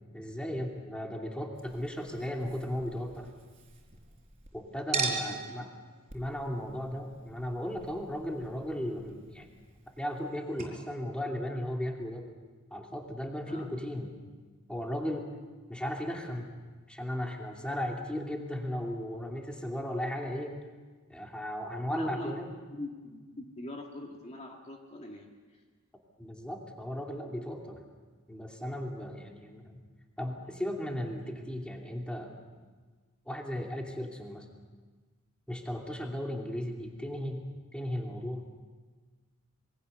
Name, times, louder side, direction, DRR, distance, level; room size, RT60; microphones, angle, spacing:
voice 1, 0.1-3.3 4.5-5.7 6.1-9.5 10.0-12.3 12.7-14.1 14.7-15.3 15.7-16.5 16.9-20.5 21.1-22.5 26.2-27.8 28.3-29.7 30.2-32.6 33.3-34.4 35.5-37.4 37.7-38.5, equal, 5° left, 1 dB, 2.8 m, -36 dB
Chink clink, 1.6-4.5 4.9-10.3 10.6-10.7, right 4 dB, 30° right, 4.3 m, -40 dB
voice 2, 5.0-5.7 13.5-13.7 21.9-22.4 22.7-25.6, left 1 dB, 30° left, 1 dB, 2.2 m, -43 dB
26.5 x 22.5 x 6.8 m, 1.4 s
head